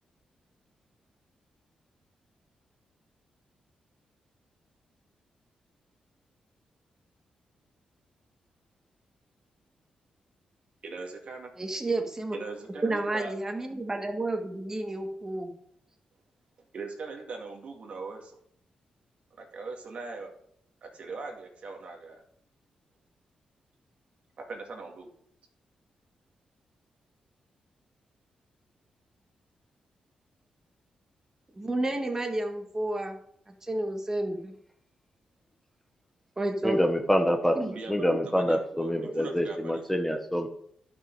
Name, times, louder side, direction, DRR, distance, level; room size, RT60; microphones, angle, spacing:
voice 1, 10.8-11.5 12.3-13.3 16.7-18.3 19.4-20.3 20.8-22.2 24.4-25.1 37.7-40.0, right 4 dB, 60° right, 1 dB, 2.2 m, -40 dB
voice 2, 11.6-12.4 12.8-15.5 31.5-33.2 33.5-34.5 36.4-36.7 37.5-37.7, right 2 dB, 20° right, 3 dB, 1.7 m, -31 dB
voice 3, 36.6-40.5, equal, 5° left, 4 dB, 1.2 m, -26 dB
11.5 x 6.2 x 4.8 m, 0.67 s
cardioid pair, 85°, 2 cm